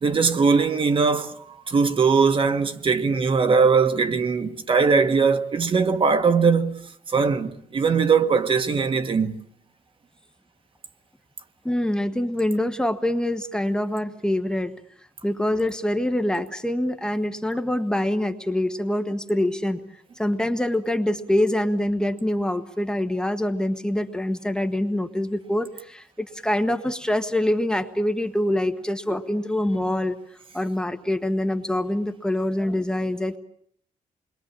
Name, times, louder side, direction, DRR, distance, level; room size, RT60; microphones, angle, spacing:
voice 1, 0.0-9.4, right 5 dB, 40° right, 1.5 m, -21 dB
voice 2, 11.6-14.7 15.2-19.8 20.2-30.2 30.5-33.4, left 1 dB, 5° left, 1.4 m, -25 dB
29.0 x 22.5 x 8.7 m
cardioid pair, 135°, 14 cm